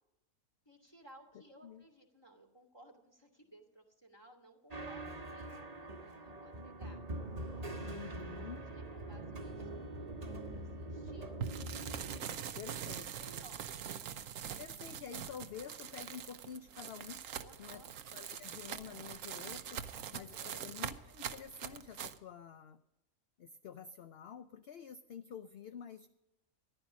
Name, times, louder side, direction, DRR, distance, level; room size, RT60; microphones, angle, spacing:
voice 1, 0.7-7.0 7.9-11.5 13.0-14.1 17.4-17.9, right 1 dB, 15° left, 1 dB, 2.2 m, -60 dB
sound 1, 4.7-12.2, right 2 dB, 30° right, 1.3 m, -43 dB
voice 2, 7.8-8.7 12.3-13.0 14.6-17.2 17.6-17.9 18.1-22.8 23.4-26.1, left 7 dB, 55° left, 10 dB, 0.7 m, -49 dB
sound 2, 11.4-22.2, right 9 dB, 70° right, 1.1 m, -43 dB
14.5 x 11.0 x 6.2 m, 0.94 s
omnidirectional pair, 1.5 m